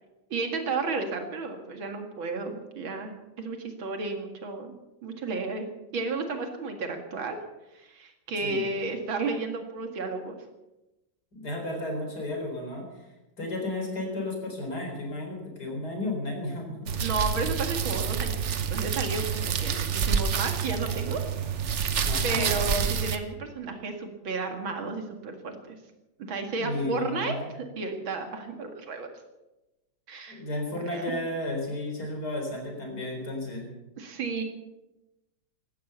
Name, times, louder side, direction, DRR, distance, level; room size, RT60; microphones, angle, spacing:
voice 1, 0.3-5.7 5.9-7.4 7.7-10.3 17.0-21.2 21.6-21.8 22.2-25.8 26.2-29.1 30.1-30.4 30.9-31.1 34.0-34.4, right 3 dB, 80° right, 5 dB, 2.8 m, -33 dB
voice 2, 11.3-12.9 13.4-16.9 22.0-22.6 26.6-27.5 30.3-33.7, left 1 dB, 50° left, 2 dB, 4.6 m, -33 dB
sound 1, 16.9-23.2, right 7 dB, 45° right, 1.0 m, -28 dB
16.5 x 12.5 x 6.8 m, 0.99 s
omnidirectional pair, 2.2 m